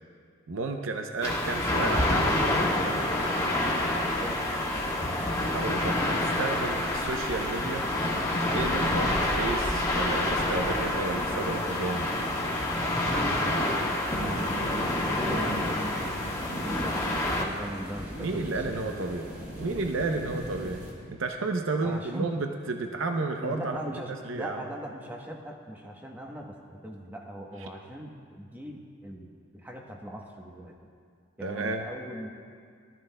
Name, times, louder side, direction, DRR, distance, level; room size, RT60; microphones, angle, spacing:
voice 1, 0.5-2.3 5.4-7.9 8.5-12.1 18.2-19.3 19.6-24.6 31.4-31.8, right 3 dB, 70° right, 4 dB, 0.6 m, -32 dB
sound 1, 1.2-17.4, left 1 dB, 15° left, 1.5 m, -27 dB
sound 2, 14.1-20.9, equal, 45° right, 2.9 m, -38 dB
voice 2, 15.1-18.6 21.8-22.4 23.4-30.8 31.4-32.3, equal, 10° right, 0 dB, 0.9 m, -40 dB
19.5 x 13.0 x 2.2 m, 2.2 s
head